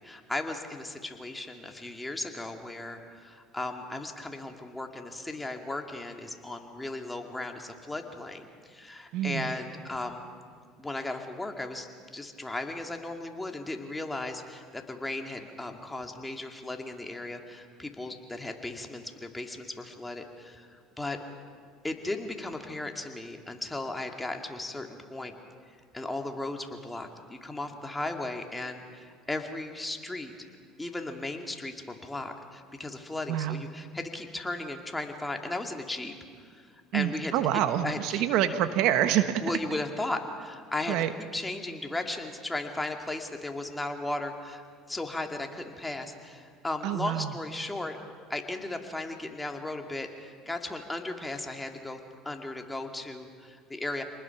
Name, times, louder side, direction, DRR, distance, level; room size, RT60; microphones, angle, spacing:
voice 1, 0.0-10.3 10.8-11.9 12.1-21.2 21.8-25.3 25.9-30.5 30.8-36.1 36.5-37.3 37.8-38.2 39.4-48.0 48.3-52.0 52.2-54.0, left 2 dB, 10° left, 3 dB, 2.4 m, -36 dB
voice 2, 9.1-9.5 33.3-33.6 36.9-39.4 40.9-41.1 46.8-47.3, right 11 dB, 70° right, 10 dB, 1.2 m, -27 dB
27.5 x 20.0 x 6.0 m, 2.1 s
supercardioid pair, 90°, 0 cm